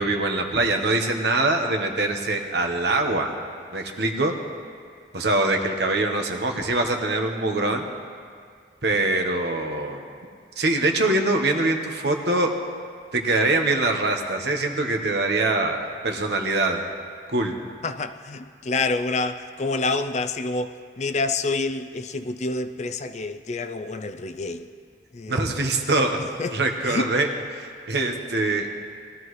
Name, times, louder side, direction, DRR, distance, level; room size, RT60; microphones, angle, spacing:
voice 1, 0.0-3.3 3.7-4.4 5.1-7.9 8.8-10.0 10.6-12.5 13.1-16.8 17.3-17.5 25.3-26.2 26.5-28.7, right 2 dB, 70° right, 3 dB, 1.2 m, -23 dB
voice 2, 17.8-24.7 25.1-25.6 26.4-26.5 26.9-27.1, left 3 dB, 40° left, 9 dB, 0.5 m, -28 dB
20.5 x 13.5 x 3.2 m, 2.1 s
head